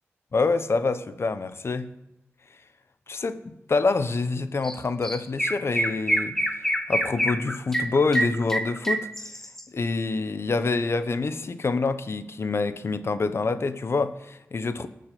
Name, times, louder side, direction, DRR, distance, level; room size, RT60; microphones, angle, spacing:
voice 1, 0.3-1.9 3.1-6.4 6.9-9.1 9.7-14.9, left 3 dB, 55° left, 1.0 m, -26 dB
Chirp tweet, 4.6-4.8 5.0-9.6, right 1 dB, 5° left, 1.4 m, -26 dB
19.5 x 6.7 x 8.5 m
wide cardioid pair, 100°, 5 cm